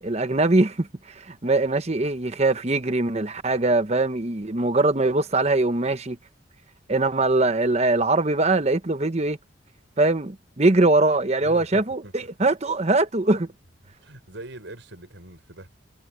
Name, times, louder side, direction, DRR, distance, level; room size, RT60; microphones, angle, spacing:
voice 1, 0.0-6.2 6.9-9.4 10.0-13.5, right 2 dB, 35° right, 1.0 m, -22 dB
voice 2, 11.4-12.1 14.0-15.7, right 1 dB, 65° right, 5.8 m, -42 dB
head